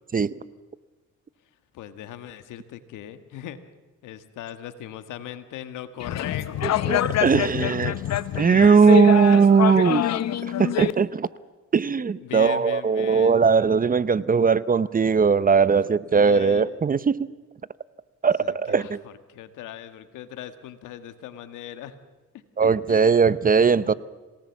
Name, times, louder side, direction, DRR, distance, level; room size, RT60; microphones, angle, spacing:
voice 1, 1.7-3.6 4.0-7.1 8.6-10.2 10.8-11.0 12.2-13.4 16.1-16.7 18.4-22.0 22.6-23.2 23.8-23.9, left 11 dB, 90° left, 11 dB, 1.6 m, -39 dB
sound 1, 6.0-10.9, left 12 dB, 60° left, 0.8 m, -25 dB
voice 2, 6.9-8.0 8.3-10.1 10.6-11.3 11.7-17.2 18.2-19.0 22.6-23.9, right 5 dB, 30° right, 18 dB, 0.7 m, -19 dB
27.5 x 18.5 x 7.2 m, 1.3 s
cardioid pair, 90°, 30 cm